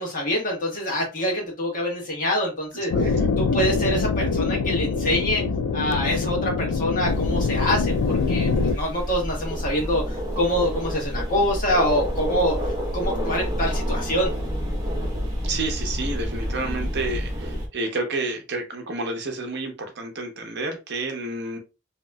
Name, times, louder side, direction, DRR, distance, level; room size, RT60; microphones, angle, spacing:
voice 1, 0.0-5.4 5.7-14.3, equal, 40° left, -1 dB, 1.3 m, -25 dB
sound 1, 2.9-8.7, left 4 dB, 80° left, 0.4 m, -24 dB
voice 2, 2.9-3.3 15.4-21.6, right 2 dB, 55° right, 4 dB, 0.7 m, -30 dB
sound 2, 7.0-17.7, equal, 20° right, 0.9 m, -29 dB
2.9 x 2.8 x 2.2 m, 0.28 s
head